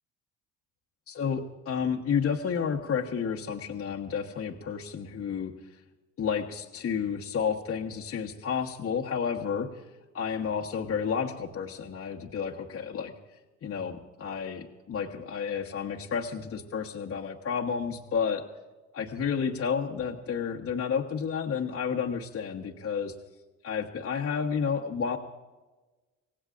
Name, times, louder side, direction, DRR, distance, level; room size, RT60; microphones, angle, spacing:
voice 1, 1.1-5.5 6.2-9.9 10.1-13.1 13.6-18.4 18.9-23.1 23.6-25.2, left 6 dB, 40° left, -2 dB, 1.3 m, -31 dB
25.0 x 17.5 x 2.6 m, 1.2 s
supercardioid pair, 75°, 34 cm